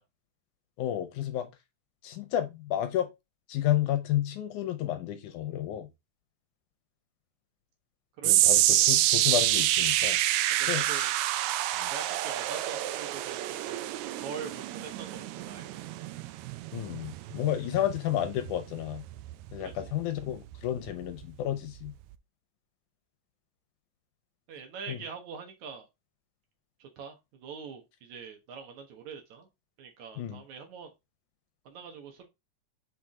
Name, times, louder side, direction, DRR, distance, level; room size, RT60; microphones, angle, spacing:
voice 1, 0.8-1.5 2.0-3.1 3.5-5.9 8.2-10.2 10.7-11.1 11.7-11.9 16.7-19.0 19.5-21.9 24.9-25.0 30.2-30.4, left 12 dB, 75° left, 2.1 m, -31 dB
voice 2, 8.2-8.7 10.6-11.1 11.9-13.8 14.2-15.9 19.6-19.7 24.5-25.9 26.8-29.5 29.8-30.9 31.7-32.3, right 6 dB, 65° right, 2.5 m, -44 dB
sound 1, 8.2-20.6 20.9-21.2 21.9-22.0, right 14 dB, 85° right, 1.6 m, -28 dB
5.8 x 4.8 x 3.6 m
omnidirectional pair, 3.8 m